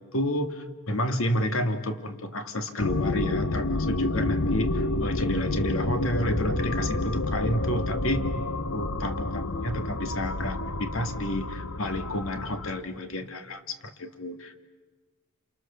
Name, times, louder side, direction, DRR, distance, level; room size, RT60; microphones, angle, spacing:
voice 1, 0.0-14.6, left 1 dB, 65° left, 7 dB, 2.1 m, -30 dB
sound 1, 2.8-12.7, left 2 dB, 85° left, 1.3 m, -29 dB
29.0 x 28.0 x 6.9 m, 1.3 s
head